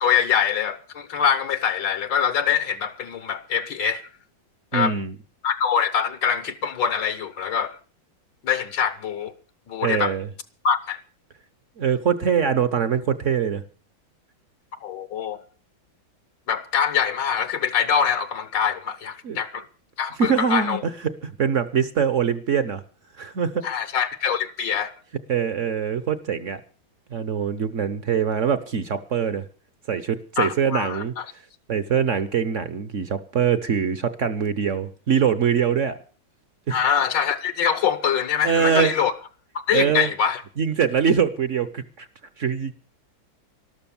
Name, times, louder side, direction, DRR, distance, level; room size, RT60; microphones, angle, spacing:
voice 1, 0.0-4.0 4.7-4.9 5.4-7.8 8.4-9.3 9.7-10.1 10.6-11.0 14.8-15.4 16.5-19.6 20.0-20.8 23.6-24.9 30.4-31.2 36.7-39.1 39.7-40.4, left 7 dB, 70° left, 1.5 m, -24 dB
voice 2, 4.7-5.2 9.8-10.3 11.8-13.6 19.2-19.4 20.2-22.8 23.2-23.7 25.3-26.6 27.1-29.4 29.9-31.1 31.7-36.0 36.7-36.8 38.4-38.9 39.7-40.1 40.6-42.1 42.4-42.7, right 7 dB, 50° right, 0.9 m, -23 dB
13.0 x 12.5 x 7.1 m
omnidirectional pair, 2.2 m